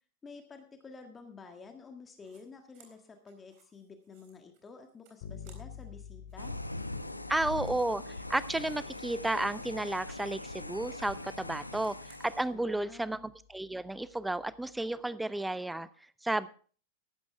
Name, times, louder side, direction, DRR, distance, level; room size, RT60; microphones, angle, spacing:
voice 1, 0.2-6.5 12.5-13.3, left 4 dB, 20° left, 5 dB, 1.7 m, -50 dB
sound 1, 2.2-2.4 2.7-6.0 6.2-10.1 10.4-12.5, right 6 dB, 45° right, 4.0 m, -65 dB
Bass guitar, 5.2-14.9, left 7 dB, 50° left, 2.8 m, -52 dB
sound 2, 6.4-12.4, left 2 dB, 85° left, 0.9 m, -41 dB
voice 2, 7.3-8.0 8.3-12.0 12.2-15.9 16.2-16.5, right 2 dB, 5° right, 18 dB, 0.6 m, -32 dB
14.5 x 12.5 x 3.4 m, 0.41 s
figure-of-eight pair, 90°, 0 cm